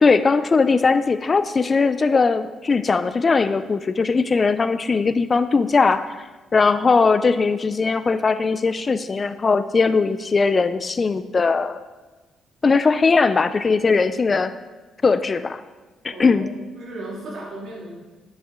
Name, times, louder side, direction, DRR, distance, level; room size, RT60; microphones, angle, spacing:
voice 1, 0.0-6.2 6.5-11.8 12.6-14.5 15.0-15.6 16.0-16.5, left 4 dB, 35° left, 13 dB, 0.4 m, -19 dB
voice 2, 16.1-17.9, right 2 dB, 65° right, -3 dB, 2.7 m, -36 dB
10.5 x 6.6 x 3.7 m, 1.2 s
cardioid pair, 90°, 0 cm